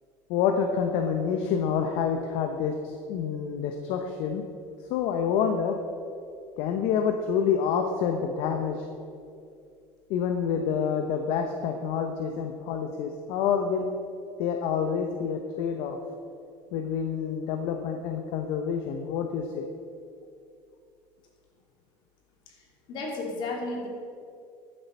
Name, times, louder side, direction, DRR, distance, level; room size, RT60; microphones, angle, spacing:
voice 1, 0.3-4.4 4.9-5.8 6.6-8.9 10.1-13.9 14.4-16.0 16.7-19.7, left 7 dB, 70° left, 5 dB, 0.9 m, -27 dB
voice 2, 22.5-23.9, left 2 dB, 50° left, -1 dB, 2.9 m, -34 dB
12.5 x 7.8 x 5.5 m, 2.4 s
cardioid pair, 145°, 10 cm